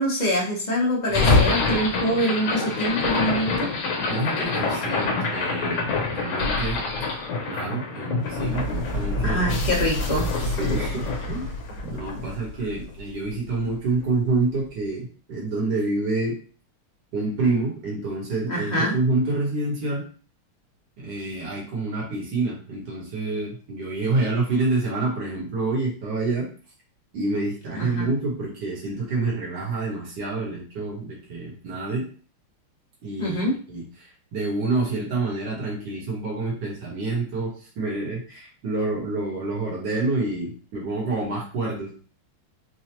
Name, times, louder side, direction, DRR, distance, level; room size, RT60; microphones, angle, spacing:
voice 1, 0.0-3.7 9.2-10.3 18.5-19.0 27.7-28.1 33.2-33.5, equal, 30° left, -4 dB, 0.7 m, -25 dB
sound 1, 1.1-13.3, left 3 dB, 75° left, 1.6 m, -25 dB
voice 2, 4.1-6.8 7.5-9.5 10.6-11.5 11.8-16.4 17.1-20.1 21.0-26.5 27.1-32.1 33.0-41.9, right 3 dB, 60° right, -4 dB, 1.9 m, -27 dB
4.6 x 2.3 x 2.9 m, 0.40 s
omnidirectional pair, 2.4 m